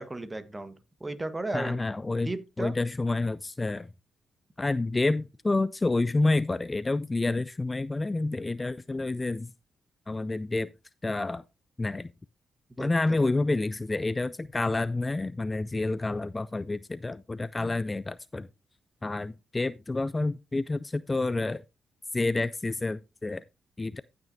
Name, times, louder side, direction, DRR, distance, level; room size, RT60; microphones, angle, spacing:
voice 1, 0.0-1.8 2.2-2.7 12.8-13.2, right 2 dB, 25° right, 1.3 m, -35 dB
voice 2, 1.5-3.9 4.6-9.5 10.1-10.7 11.0-11.4 11.8-12.1 12.8-18.5 19.0-21.6 22.1-23.4 23.8-24.0, left 2 dB, 25° left, 0.4 m, -29 dB
15.5 x 6.1 x 2.7 m
supercardioid pair, 50°, 0 cm